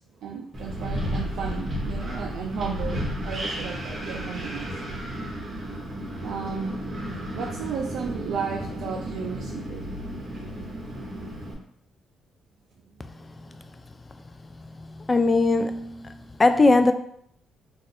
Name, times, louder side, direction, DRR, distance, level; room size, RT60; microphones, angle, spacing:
voice 1, 0.2-4.7 6.2-6.8 7.3-9.9, right 6 dB, 75° right, 0.3 m, -34 dB
Wind, 0.5-11.5, equal, 30° right, 0.9 m, -33 dB
voice 2, 15.1-16.9, left 3 dB, 25° left, 0.3 m, -20 dB
2.6 x 2.4 x 4.1 m
cardioid pair, 90°, 0 cm